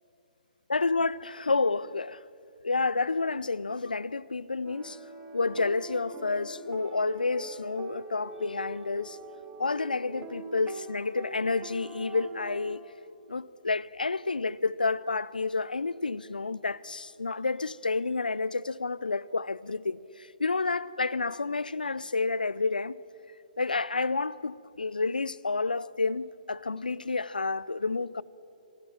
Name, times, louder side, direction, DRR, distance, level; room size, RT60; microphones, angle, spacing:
voice 1, 0.7-2.2 2.6-5.0 5.3-9.2 9.6-12.8 13.3-23.0 23.6-28.2, left 3 dB, 80° left, 0.6 m, -30 dB
sound 1, 4.6-12.7, right 4 dB, 25° right, 2.6 m, -44 dB
27.0 x 19.5 x 7.3 m
figure-of-eight pair, 125°, 5 cm